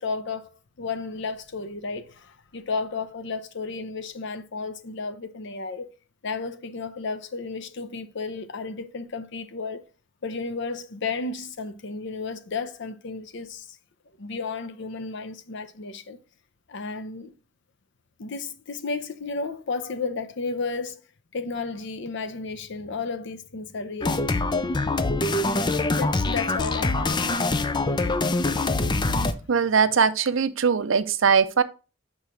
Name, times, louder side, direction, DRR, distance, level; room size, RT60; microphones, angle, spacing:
voice 1, 0.0-5.9 6.2-9.9 10.2-13.8 14.2-16.2 16.7-17.3 18.2-21.0 21.3-24.3 25.9-27.6 28.0-28.1, left 4 dB, 65° left, 0.7 m, -33 dB
sound 1, 24.0-29.3, left 2 dB, 25° left, 0.5 m, -24 dB
voice 2, 29.5-31.6, right 6 dB, 75° right, 0.6 m, -21 dB
5.6 x 4.7 x 5.1 m
head